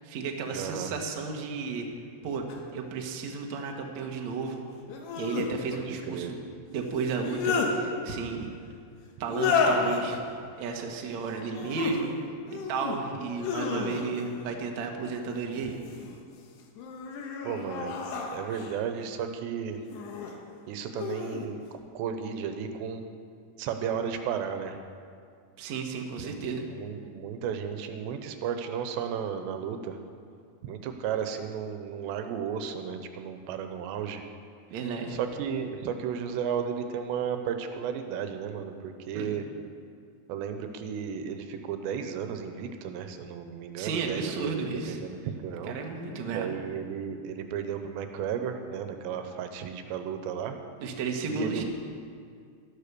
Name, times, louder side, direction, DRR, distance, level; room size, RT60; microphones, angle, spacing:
voice 1, 0.0-1.9 2.2-2.4 2.7-4.6 5.2-6.4 6.7-8.5 9.2-10.2 10.6-12.2 12.7-15.8 25.6-26.6 34.7-35.2 39.1-39.3 43.8-45.0 45.7-46.5 50.8-51.6, right 4 dB, 65° right, 2 dB, 1.8 m, -33 dB
voice 2, 0.5-0.9 5.7-6.3 17.4-17.9 18.3-19.8 20.7-21.6 21.9-23.1 23.6-24.8 26.2-30.0 30.6-34.3 35.1-39.4 40.3-45.8 46.3-50.6 51.3-51.6, right 7 dB, 80° right, 7 dB, 3.0 m, -34 dB
sound 1, 2.5-2.6 4.9-5.5 7.0-7.7 9.3-10.0 11.5-12.0 12.5-13.0 13.4-14.3 15.5-16.1 16.8-18.8 19.9-20.3 20.9-21.5, left 5 dB, 75° left, 3.3 m, -31 dB
13.0 x 12.0 x 6.8 m, 2.3 s
omnidirectional pair, 5.0 m